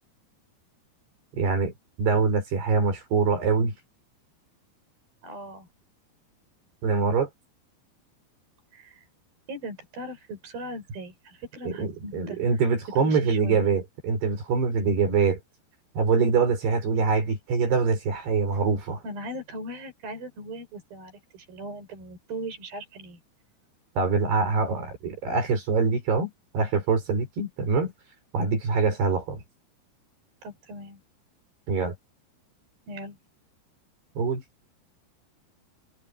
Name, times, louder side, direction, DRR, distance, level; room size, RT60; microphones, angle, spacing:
voice 1, 1.4-3.7 6.8-7.3 11.6-15.4 16.0-19.0 24.0-27.9 28.3-29.4 31.7-31.9 34.2-34.4, right 4 dB, 80° right, 8.0 m, -24 dB
voice 2, 5.2-5.7 8.7-9.1 9.5-12.4 13.0-13.7 19.0-23.2 30.4-31.0 32.9-33.2, right 1 dB, 65° right, 8.4 m, -39 dB
omnidirectional pair, 4.6 m